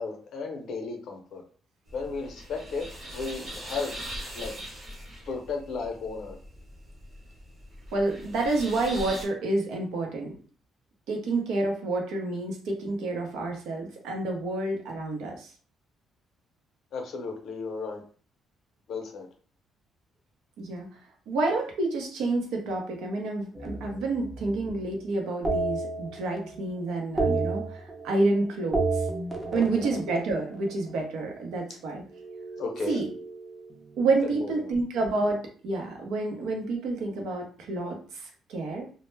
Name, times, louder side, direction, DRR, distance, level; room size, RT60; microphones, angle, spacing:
voice 1, 0.0-1.4 1.9-2.9 3.1-3.9 4.3-4.5 5.3-6.4 16.9-18.0 18.9-19.3 29.5-30.0 32.6-33.0 34.4-34.5, left 4 dB, 60° left, 2 dB, 0.6 m, -34 dB
sound 1, 1.9-9.2, equal, 30° right, 1.0 m, -41 dB
voice 2, 7.9-10.3 11.1-15.5 20.6-20.9 21.3-29.1 29.5-32.0 32.9-33.1 34.0-38.9, right 2 dB, 90° right, 1 dB, 0.6 m, -29 dB
sound 2, 23.5-24.8 25.4-26.6 26.9-28.3 28.6-31.0 32.1-33.9, right 3 dB, 15° right, 0.5 m, -32 dB
2.0 x 2.0 x 3.2 m, 0.43 s
cardioid pair, 150°, 0 cm